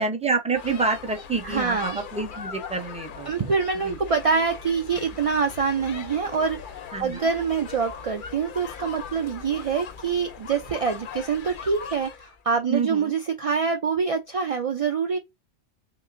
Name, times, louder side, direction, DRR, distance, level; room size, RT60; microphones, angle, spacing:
voice 1, 0.0-3.3 3.8-4.0 6.9-7.3 12.7-13.2, right 4 dB, 10° right, 0.5 m, -27 dB
sound 1, 0.5-12.4, left 6 dB, 60° left, 0.6 m, -40 dB
voice 2, 1.4-2.0 3.3-6.6 7.0-15.2, right 5 dB, 60° right, 0.3 m, -25 dB
5.9 x 2.0 x 2.5 m
omnidirectional pair, 1.2 m